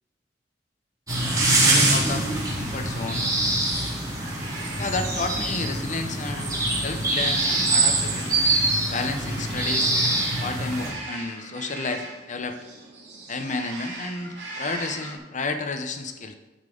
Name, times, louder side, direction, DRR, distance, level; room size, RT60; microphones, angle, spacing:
sound 1, 1.1-10.9, right 2 dB, 20° right, 2.2 m, -24 dB
voice 1, 1.6-3.3 4.8-6.5 6.8-8.4 8.9-9.9 10.4-12.6 13.3-16.3, left 3 dB, 45° left, 7 dB, 0.8 m, -31 dB
sound 2, 1.9-15.2, right 2 dB, 85° right, 2.3 m, -41 dB
11.0 x 5.5 x 3.9 m, 1.1 s
head